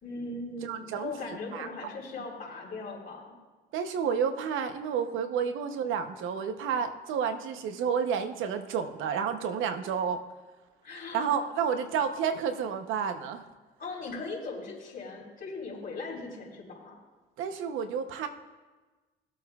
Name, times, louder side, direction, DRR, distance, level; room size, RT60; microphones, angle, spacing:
voice 1, 0.0-3.3 10.8-11.4 13.8-16.9, left 3 dB, 45° left, -6 dB, 3.8 m, -39 dB
voice 2, 0.6-1.1 1.5-1.7 3.7-10.2 11.1-13.4 17.4-18.3, right 7 dB, 90° right, 8 dB, 0.8 m, -30 dB
19.0 x 8.2 x 2.3 m, 1.3 s
cardioid pair, 90°, 20 cm